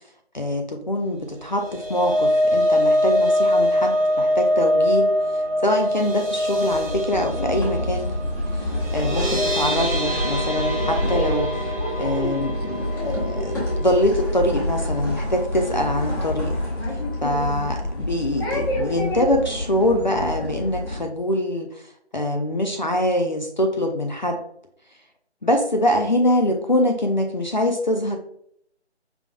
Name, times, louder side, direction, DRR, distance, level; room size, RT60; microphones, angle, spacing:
voice 1, 0.3-5.1 5.6-8.1 8.5-11.5 12.0-16.5 17.2-21.8 22.1-24.4 25.4-28.2, left 1 dB, 45° left, 4 dB, 0.5 m, -24 dB
sound 1, 1.4-15.6 16.0-16.2 16.5-16.6, equal, 15° right, 1.1 m, -24 dB
sound 2, 6.7-21.1, left 1 dB, 20° left, 1.3 m, -27 dB
5.2 x 3.5 x 2.3 m, 0.68 s
figure-of-eight pair, 155°, 34 cm